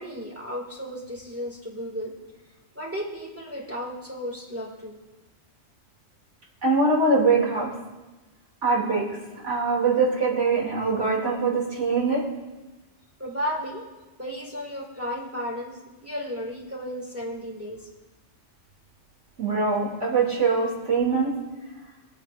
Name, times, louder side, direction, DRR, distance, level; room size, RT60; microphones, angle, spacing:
voice 1, 0.0-2.1 2.7-5.0 13.2-13.9 14.2-17.9, equal, 10° right, -2 dB, 2.1 m, -34 dB
voice 2, 6.6-7.7 8.6-9.1 9.4-12.2 19.4-21.3, right 4 dB, 75° right, -2 dB, 3.0 m, -23 dB
22.5 x 8.5 x 2.5 m, 1.1 s
omnidirectional pair, 1.2 m